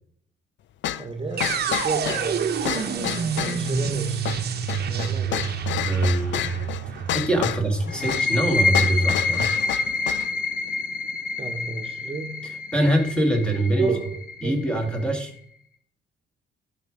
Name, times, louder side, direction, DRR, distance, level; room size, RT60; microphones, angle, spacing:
sound 1, 0.8-10.3, left 12 dB, 65° left, 0.5 m, -30 dB
voice 1, 1.0-4.2 4.8-5.6 7.9-8.1 11.4-12.6 13.8-14.8, right 3 dB, 30° right, 5 dB, 1.4 m, -32 dB
sound 2, 1.4-9.3, right 7 dB, 55° right, 1.0 m, -28 dB
voice 2, 5.8-6.5 6.9-9.5 12.7-13.9 14.4-15.3, right 1 dB, 5° left, 3 dB, 2.0 m, -24 dB
sound 3, 7.9-15.3, left 3 dB, 45° left, 1.0 m, -27 dB
11.0 x 5.3 x 4.9 m, 0.65 s
cardioid pair, 90°, 20 cm